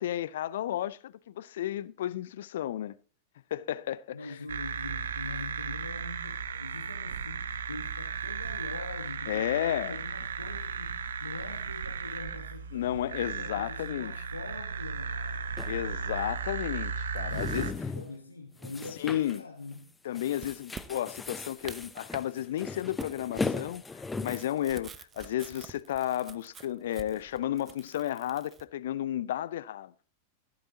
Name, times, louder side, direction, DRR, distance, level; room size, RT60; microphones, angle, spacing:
voice 1, 0.0-3.0 3.5-4.4 9.3-10.0 12.7-14.1 15.6-17.7 19.0-19.4 20.0-29.9, left 12 dB, 60° left, 0.5 m, -33 dB
voice 2, 4.1-15.4 17.2-19.9, left 3 dB, 80° left, 1.3 m, -44 dB
sound 1, 4.5-17.7, right 6 dB, 65° right, 0.9 m, -36 dB
sound 2, 15.6-15.7 17.2-18.1 18.6-19.4 19.7-19.9 20.1-24.5, left 4 dB, 10° left, 0.8 m, -37 dB
sound 3, 20.3-22.3 22.6-28.6, right 7 dB, 20° right, 0.8 m, -48 dB
15.0 x 12.5 x 2.9 m
figure-of-eight pair, 90°, 0 cm